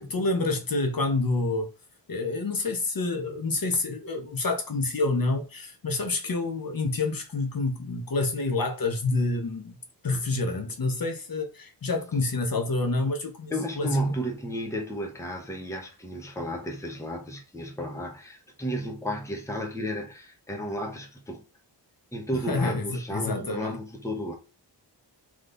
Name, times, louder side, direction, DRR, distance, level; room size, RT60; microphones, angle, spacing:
voice 1, 0.0-1.7 2.1-9.8 10.0-14.1 22.5-23.8, left 3 dB, 50° left, 1.1 m, -28 dB
voice 2, 13.5-21.4 22.1-24.4, equal, 5° left, 1.0 m, -33 dB
3.7 x 3.2 x 3.9 m
wide cardioid pair, 100°, 43 cm